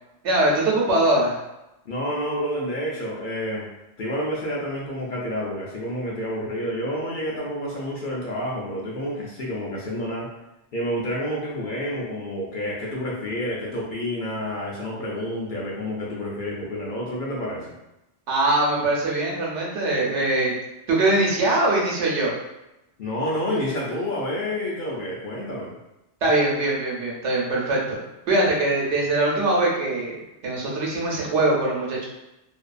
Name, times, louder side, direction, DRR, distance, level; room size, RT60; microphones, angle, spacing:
voice 1, 0.2-1.4 18.3-20.5 20.9-22.3 26.2-28.0 28.3-32.0, right 2 dB, 80° right, -3 dB, 1.0 m, -22 dB
voice 2, 1.9-3.7 4.0-10.3 10.7-17.7 23.0-25.7, equal, 60° left, -4 dB, 0.6 m, -29 dB
2.6 x 2.2 x 2.4 m, 0.92 s
omnidirectional pair, 1.2 m